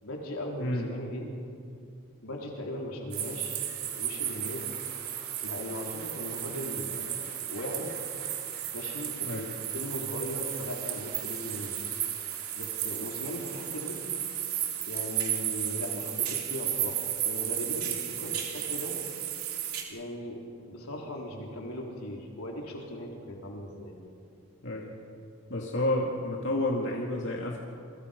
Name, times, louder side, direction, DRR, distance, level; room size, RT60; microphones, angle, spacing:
voice 1, 0.0-1.3 2.2-3.7 4.0-4.7 5.4-7.0 7.5-7.9 8.7-9.5 9.7-11.8 12.5-14.0 14.9-19.0 19.9-20.4 20.7-24.0, left 1 dB, 85° left, -1 dB, 4.0 m, -38 dB
sound 1, 3.1-19.8, right 10 dB, 80° right, 3.0 m, -34 dB
Applause, 3.3-17.9, right 2 dB, 50° right, 6.0 m, -54 dB
voice 2, 24.6-24.9 25.5-27.6, left 1 dB, 60° left, -1 dB, 2.3 m, -30 dB
29.5 x 23.5 x 5.3 m, 2.5 s
head